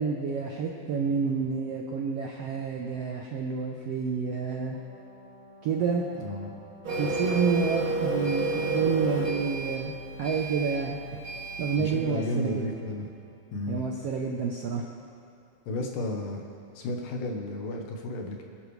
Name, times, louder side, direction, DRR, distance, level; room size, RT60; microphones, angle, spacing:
voice 1, 0.0-4.8 5.6-6.0 7.0-9.9 10.2-11.2 11.6-12.7 13.7-14.8, right 5 dB, 80° right, 1 dB, 1.4 m, -29 dB
Brass instrument, 4.7-13.4, equal, 60° right, 3.9 m, -52 dB
voice 2, 6.2-6.6 11.8-13.1 13.5-13.8 15.7-16.4 16.8-18.4, left 1 dB, 75° left, 2 dB, 2.8 m, -33 dB
Printer, 6.8-11.9, right 2 dB, 40° right, 3.0 m, -30 dB
25.5 x 10.5 x 3.3 m, 2.5 s
omnidirectional pair, 3.8 m